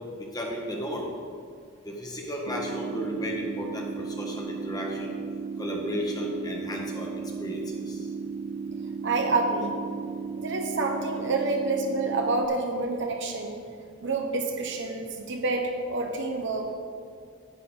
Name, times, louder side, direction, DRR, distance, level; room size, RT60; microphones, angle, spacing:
voice 1, 0.3-1.1 1.8-5.1 5.6-7.1 7.4-8.0, equal, 20° left, -1 dB, 1.4 m, -33 dB
sound 1, 2.5-12.5, right 5 dB, 30° right, 0.3 m, -35 dB
voice 2, 9.0-9.8 10.4-13.6 14.0-16.7, right 3 dB, 60° right, 3 dB, 1.1 m, -28 dB
10.0 x 9.2 x 4.0 m, 2.2 s
head